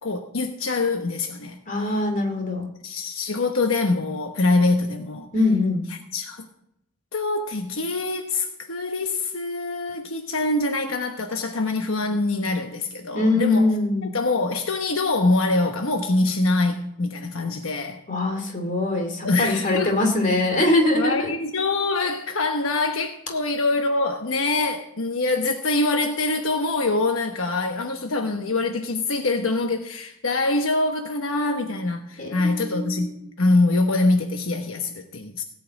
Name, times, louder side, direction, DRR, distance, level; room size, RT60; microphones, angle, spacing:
voice 1, 0.0-1.6 2.8-5.3 6.1-6.4 7.1-13.7 14.1-18.0 19.2-19.9 20.7-33.1 33.4-35.4, left 2 dB, 75° left, 1.1 m, -24 dB
voice 2, 1.7-2.7 5.3-5.8 13.1-14.1 18.1-21.3 32.2-33.2, left 2 dB, 40° left, 2.4 m, -23 dB
17.0 x 5.7 x 8.2 m
head